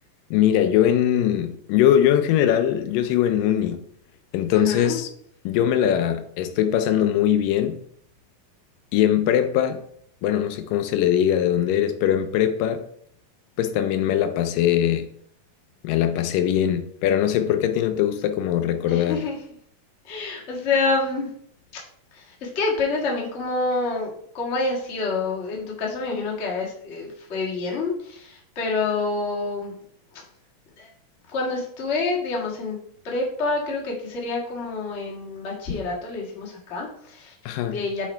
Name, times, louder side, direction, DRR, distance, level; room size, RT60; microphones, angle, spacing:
voice 1, 0.3-3.8 4.3-5.1 5.5-7.8 8.9-9.8 10.2-12.8 13.6-15.1 15.8-19.3 37.5-37.8, left 10 dB, 80° left, 2.2 m, -21 dB
voice 2, 4.5-5.0 18.9-19.4 20.0-21.3 22.1-29.7 30.1-30.2 30.8-30.9 31.3-32.8 33.0-38.1, left 3 dB, 35° left, 1.1 m, -27 dB
7.2 x 4.6 x 4.4 m
omnidirectional pair, 4.0 m